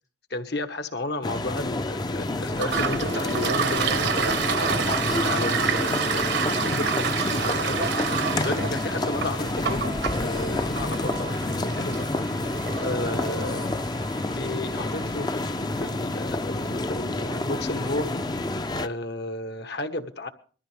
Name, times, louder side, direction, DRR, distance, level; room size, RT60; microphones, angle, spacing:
voice 1, 0.3-4.8 5.2-7.9 8.4-12.2 12.7-13.7 14.3-18.2 18.8-20.3, left 2 dB, 60° left, 8 dB, 1.4 m, -33 dB
sound 1, 1.2-18.9, left 2 dB, 20° left, 0.6 m, -28 dB
Toilet flush, 2.5-15.9, right 6 dB, 65° right, 1.1 m, -29 dB
sound 2, 8.0-13.7, right 3 dB, 25° right, 0.7 m, -44 dB
21.5 x 14.0 x 3.4 m, 0.40 s
head